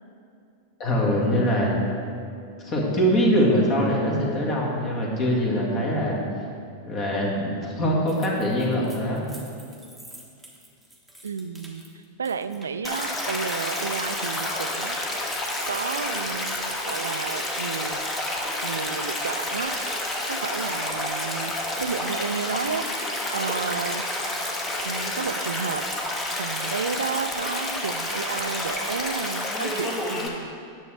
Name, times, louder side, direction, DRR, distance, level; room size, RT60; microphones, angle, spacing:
voice 1, 0.8-1.8 2.6-6.2 6.9-9.3, equal, 35° left, -2 dB, 1.9 m, -23 dB
sound 1, 8.1-17.2 17.5-20.3, right 1 dB, ahead, 1.2 m, -47 dB
voice 2, 11.2-11.8 12.2-15.3 15.7-18.1 18.6-19.7 20.3-21.5 21.8-23.1 23.3-24.0 24.8-25.8 26.4-30.5, right 5 dB, 70° right, 12 dB, 0.3 m, -32 dB
Stream, 12.8-30.3, left 1 dB, 15° left, 1.2 m, -29 dB
9.6 x 6.3 x 4.3 m, 2.4 s
figure-of-eight pair, 90°, 0 cm